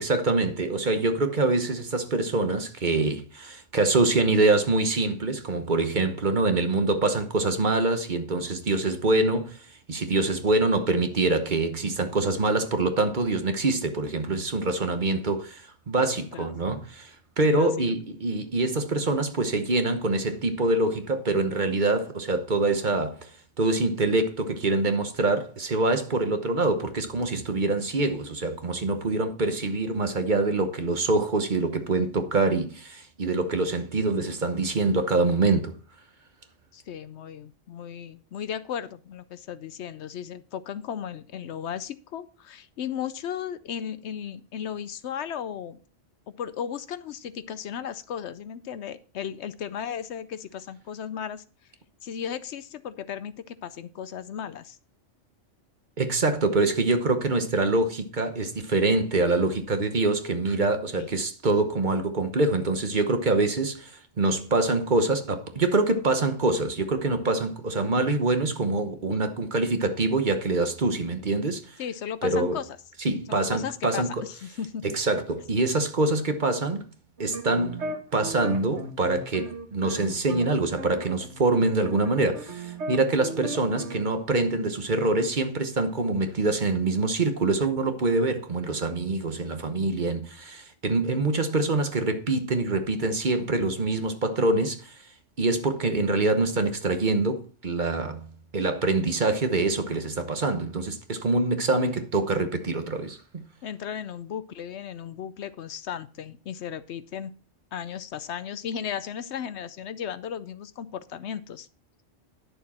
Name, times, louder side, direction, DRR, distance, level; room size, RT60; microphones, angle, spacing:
voice 1, 0.0-9.6 9.9-23.3 23.6-35.7 56.0-71.8 72.2-72.6 73.0-74.1 74.8-76.9 77.2-77.8 78.1-95.0 95.4-98.3 98.5-103.4, right 2 dB, 45° right, 1.1 m, -25 dB
voice 2, 15.9-16.5 17.5-17.9 36.7-45.8 46.3-51.4 52.0-54.8 61.0-61.1 71.8-72.8 73.3-74.8 103.6-107.3 107.7-111.7, left 8 dB, 70° left, 0.9 m, -35 dB
sound 1, 77.2-80.5 80.8-84.0, right 2 dB, 65° right, 1.7 m, -36 dB
11.0 x 6.8 x 4.2 m
omnidirectional pair, 1.2 m